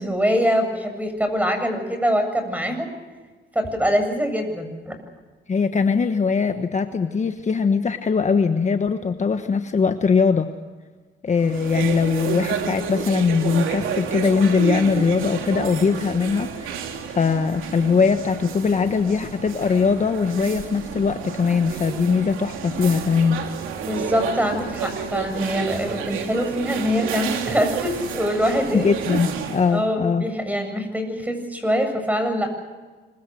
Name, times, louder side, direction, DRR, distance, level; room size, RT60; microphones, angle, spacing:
voice 1, 0.0-2.9 3.5-5.0 23.8-28.9 29.7-32.5, equal, 5° right, 7 dB, 7.6 m, -24 dB
voice 2, 5.5-10.5 11.2-23.4 28.7-30.3, left 5 dB, 35° left, 7 dB, 1.3 m, -21 dB
sound 1, 11.3-29.8, right 7 dB, 90° right, 3.1 m, -30 dB
26.5 x 23.5 x 6.4 m, 1.3 s
cardioid pair, 90°, 20 cm